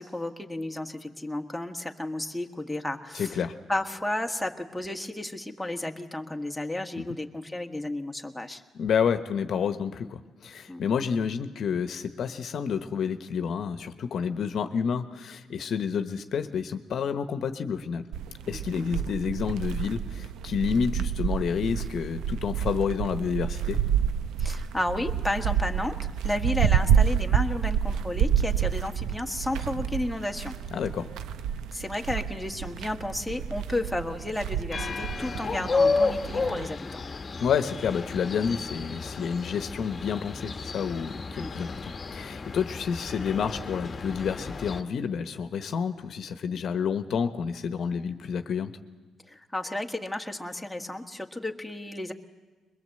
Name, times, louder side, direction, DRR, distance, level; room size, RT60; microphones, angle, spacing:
voice 1, 0.0-3.4 3.7-8.6 10.7-10.8 18.4-18.9 24.4-26.0 26.2-30.5 31.7-37.0 41.3-41.5 49.3-52.1, left 1 dB, 5° left, 2 dB, 1.5 m, -32 dB
voice 2, 3.1-3.5 7.0-7.1 8.7-18.0 18.5-23.8 30.7-31.1 37.4-48.7, left 7 dB, 60° left, 9 dB, 1.1 m, -29 dB
sound 1, 18.1-36.7, right 8 dB, 85° right, 0.7 m, -29 dB
sound 2, 34.7-44.8, left 4 dB, 35° left, 1.3 m, -32 dB
22.0 x 21.5 x 7.8 m, 1.3 s
cardioid pair, 90°, 0 cm